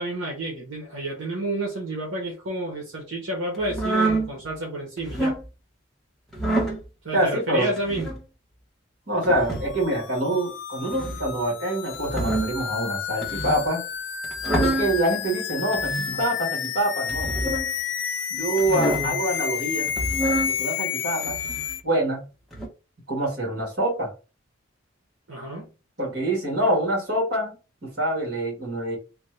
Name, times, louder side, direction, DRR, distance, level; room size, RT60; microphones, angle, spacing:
voice 1, 0.0-5.4 7.0-8.2 14.4-14.8 25.3-25.7, right 1 dB, 80° right, -1 dB, 0.9 m, -30 dB
sound 1, 3.6-4.3 5.0-5.4 6.3-6.8 7.8-8.2 9.2-9.7 10.8-11.3 11.9-12.6 13.2-13.6 14.2-14.9 15.7-16.2 17.1-17.7 18.6-19.2 19.8-20.5 21.2-21.7 22.5-22.7, right 2 dB, ahead, 0.8 m, -26 dB
voice 2, 7.1-7.7 9.1-13.8 14.6-17.3 18.3-19.9 20.5-21.4 21.8-22.2 23.1-24.1 26.0-27.6 27.8-29.0, right 1 dB, 55° right, -2 dB, 1.7 m, -25 dB
sound 2, 9.5-21.8, left 8 dB, 65° left, 0.4 m, -30 dB
3.3 x 2.2 x 3.2 m, 0.32 s
head